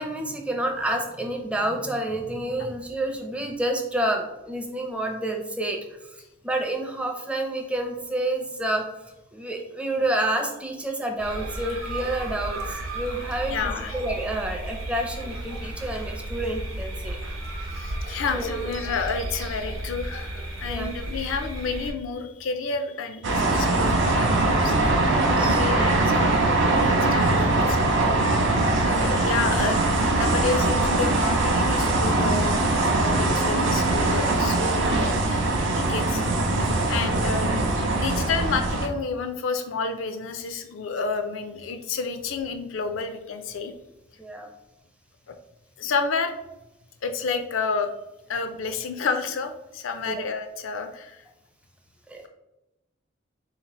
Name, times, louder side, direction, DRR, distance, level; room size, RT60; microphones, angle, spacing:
voice 1, 0.0-5.8 6.4-8.9 9.3-17.2 18.3-18.6 20.6-20.9 25.2-25.6 28.3-28.6 44.2-44.5 50.1-50.3 52.1-52.2, right 1 dB, 5° right, 2 dB, 0.5 m, -29 dB
sound 1, 11.2-21.9, right 1 dB, 90° right, 0.8 m, -34 dB
voice 2, 13.5-14.0 17.7-25.2 25.6-27.8 28.8-35.4 35.7-36.4 36.9-37.7 38.0-43.7 45.3-45.4 45.8-46.3 47.0-47.9 48.3-51.2, left 4 dB, 75° left, 6 dB, 0.4 m, -30 dB
sound 2, 23.2-38.9, right 2 dB, 65° right, 0.5 m, -22 dB
3.9 x 2.8 x 3.0 m, 0.95 s
head